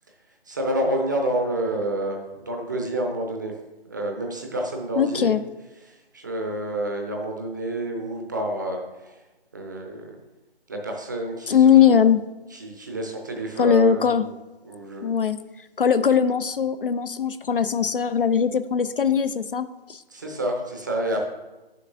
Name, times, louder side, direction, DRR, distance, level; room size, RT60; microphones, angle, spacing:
voice 1, 0.5-3.5 3.8-5.3 5.9-9.2 9.5-10.2 10.7-12.0 12.5-14.3 14.6-15.1 20.1-21.2, right 1 dB, 20° right, 2 dB, 0.6 m, -29 dB
voice 2, 5.0-5.4 11.5-12.2 13.6-14.2 15.0-15.4 15.8-20.0, left 8 dB, 60° left, 12 dB, 0.4 m, -20 dB
10.5 x 6.6 x 2.6 m, 1.1 s
figure-of-eight pair, 145°, 31 cm